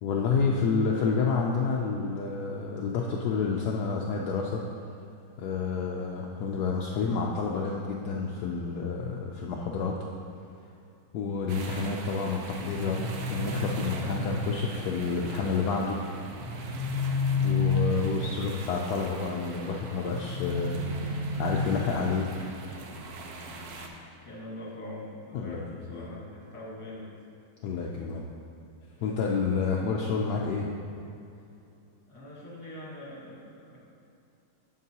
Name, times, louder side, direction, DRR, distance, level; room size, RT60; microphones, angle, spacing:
voice 1, 0.0-4.6 5.4-10.0 11.1-16.0 17.4-22.3 25.3-25.6 25.9-26.1 27.6-28.2 29.0-30.7, left 5 dB, 75° left, -1 dB, 0.9 m, -29 dB
sound 1, 11.5-23.9, right 2 dB, 70° right, 0.9 m, -42 dB
sound 2, 12.7-14.7 16.4-18.4 20.1-22.1, left 3 dB, 20° right, 1.1 m, -30 dB
voice 2, 17.8-18.4 23.7-27.1 28.9-29.5 32.1-33.9, left 1 dB, 15° left, -6 dB, 1.4 m, -44 dB
11.0 x 5.3 x 2.8 m, 2.6 s
omnidirectional pair, 2.2 m